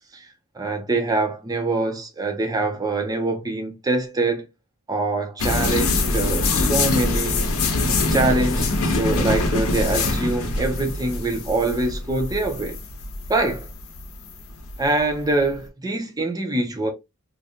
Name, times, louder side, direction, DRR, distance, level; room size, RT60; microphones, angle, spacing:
voice 1, 0.5-4.5 4.9-7.4 8.1-12.8 13.3-13.7 14.8-16.9, right 2 dB, 15° right, 0.6 m, -24 dB
sound 1, 5.4-15.5, left 2 dB, 75° left, 0.7 m, -24 dB
2.5 x 2.2 x 2.8 m
head